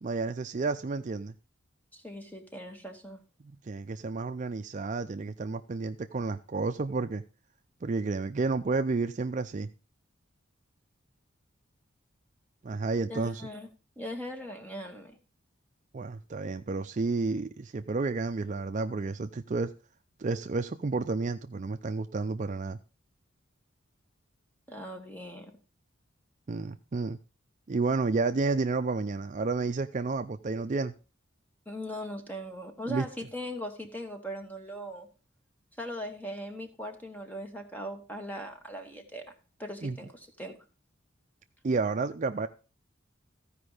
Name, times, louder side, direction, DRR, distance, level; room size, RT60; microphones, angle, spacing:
voice 1, 0.0-1.3 3.6-7.2 7.8-9.7 12.6-13.5 15.9-19.7 20.2-22.8 26.5-27.2 27.7-30.9 32.9-33.0 39.8-40.0 41.6-42.5, right 3 dB, 40° right, 0.4 m, -31 dB
voice 2, 1.9-3.2 13.1-13.7 14.0-15.2 24.7-25.5 31.6-35.1 35.8-39.3 39.6-40.6, equal, 10° left, 1.4 m, -39 dB
14.5 x 5.2 x 4.9 m
head